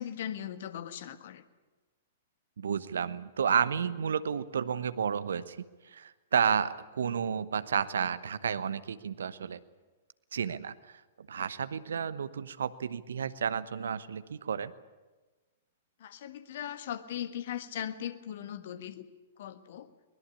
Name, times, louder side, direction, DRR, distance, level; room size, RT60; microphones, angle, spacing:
voice 1, 0.0-1.4 16.0-19.0 19.4-19.9, left 10 dB, 55° left, 11 dB, 1.5 m, -39 dB
voice 2, 2.6-9.6 10.3-14.7, right 7 dB, 65° right, 15 dB, 1.0 m, -31 dB
23.0 x 20.5 x 8.5 m, 1.2 s
figure-of-eight pair, 105°, 0 cm